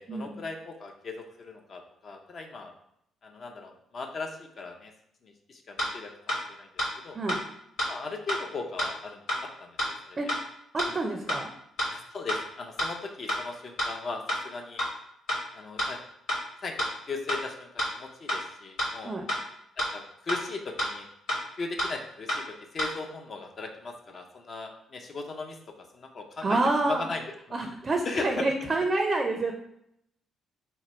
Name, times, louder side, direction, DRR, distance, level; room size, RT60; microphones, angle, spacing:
voice 1, 0.0-2.7 3.2-4.9 5.2-6.7 7.0-7.2 7.9-10.3 10.8-11.0 11.9-14.8 15.5-16.0 16.6-19.1 19.8-21.1 21.6-26.6 26.8-27.2 28.1-28.5, left 3 dB, 50° left, 3 dB, 0.5 m, -38 dB
sound 1, 5.8-5.9 6.3-6.4 6.8-6.9 7.3-7.4 7.8-7.9 8.3-8.4 8.8-8.9 9.3-9.4 9.8-9.9 10.3-10.4 10.8-10.9 11.3-11.4 11.8-11.9 12.3-12.4 12.8-12.9 13.3-13.4 13.8-13.9 14.3-14.4 14.8-14.9 15.3-15.4 15.8-15.9 16.3-16.4 16.8-16.9 17.3-17.4 17.8-17.9 18.3-18.4 18.8-18.9 19.3-19.4 19.8-19.9 20.3-20.4 20.8-20.9 21.3-21.4 21.8-21.9 22.3-22.4 22.8-22.9, left 1 dB, 85° left, 1.2 m, -28 dB
voice 2, 10.7-11.5 19.0-19.2 26.4-27.1 27.5-29.5, right 2 dB, 35° right, 3 dB, 0.4 m, -28 dB
3.0 x 2.2 x 4.1 m, 0.75 s
cardioid pair, 90°, 0 cm